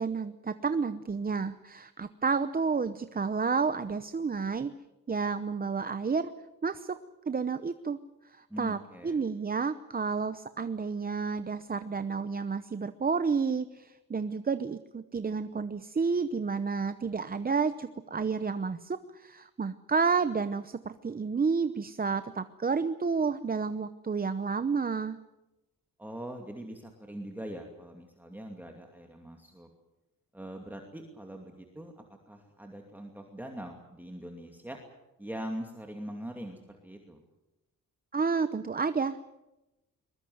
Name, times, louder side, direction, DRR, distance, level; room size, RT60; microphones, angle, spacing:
voice 1, 0.0-4.7 5.1-6.3 6.6-7.0 7.3-8.0 8.2-8.8 9.0-25.2 38.1-39.2, right 5 dB, 25° right, 11 dB, 0.8 m, -30 dB
voice 2, 8.5-9.2 26.0-29.7 30.3-34.8 35.2-37.2, equal, 5° right, 2 dB, 2.6 m, -42 dB
23.0 x 21.5 x 7.9 m, 0.98 s
wide cardioid pair, 145°, 34 cm